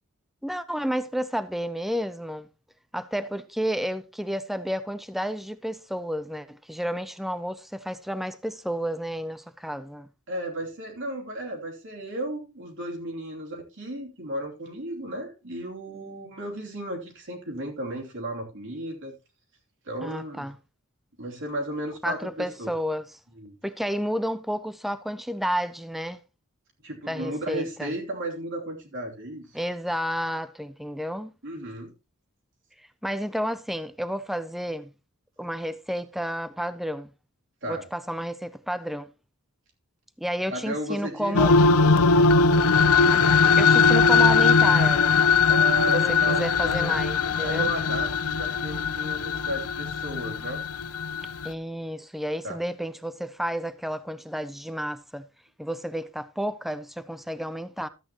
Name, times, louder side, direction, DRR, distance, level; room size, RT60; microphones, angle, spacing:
voice 1, 0.4-2.5 2.9-10.1 20.0-20.6 22.0-23.1 23.6-26.2 27.1-27.9 29.5-31.3 33.0-34.9 35.4-37.1 37.7-39.1 40.2-41.5 43.6-45.2 45.9-47.7 51.4-55.3 55.6-57.9, equal, ahead, 0.4 m, -31 dB
voice 2, 10.3-19.1 19.8-20.5 21.2-22.7 23.4-23.6 26.8-29.6 31.4-31.9 37.6-37.9 40.5-41.4 45.5-47.0 47.4-50.6 52.4-52.6, right 1 dB, 60° right, 2.9 m, -34 dB
sound 1, 41.3-51.5, left 4 dB, 80° left, 0.6 m, -20 dB
13.0 x 8.6 x 2.9 m
head